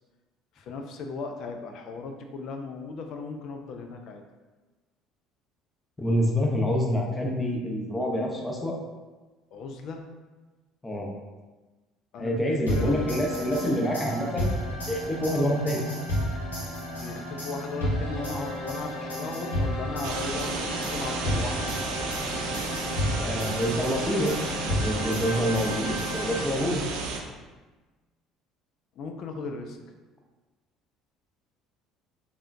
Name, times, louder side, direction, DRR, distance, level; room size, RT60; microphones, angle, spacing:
voice 1, 0.6-4.2 9.5-10.1 12.1-13.0 15.3-15.5 17.0-21.7 29.0-29.8, left 4 dB, 55° left, 4 dB, 0.3 m, -37 dB
voice 2, 6.0-8.7 10.8-11.1 12.2-14.5 14.9-15.8 23.2-24.3 24.7-26.8, equal, 15° left, -1 dB, 0.6 m, -27 dB
sound 1, 12.7-26.8, left 1 dB, 90° left, 0.6 m, -32 dB
sound 2, 20.0-27.2, right 4 dB, 70° right, 0.4 m, -33 dB
3.5 x 2.3 x 2.5 m, 1.2 s
hypercardioid pair, 60°, 0 cm